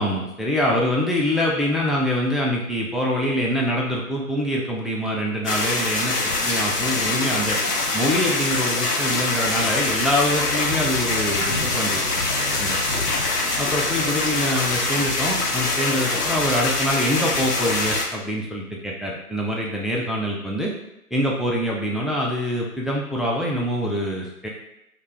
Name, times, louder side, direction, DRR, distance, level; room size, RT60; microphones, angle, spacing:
voice 1, 0.0-7.6 7.9-12.0 12.6-13.0 13.6-20.7 21.1-24.5, equal, ahead, -3 dB, 0.3 m, -24 dB
sound 1, 5.4-18.0, left 2 dB, 90° left, 0.7 m, -24 dB
2.4 x 2.2 x 3.2 m, 0.85 s
figure-of-eight pair, 175°, 45 cm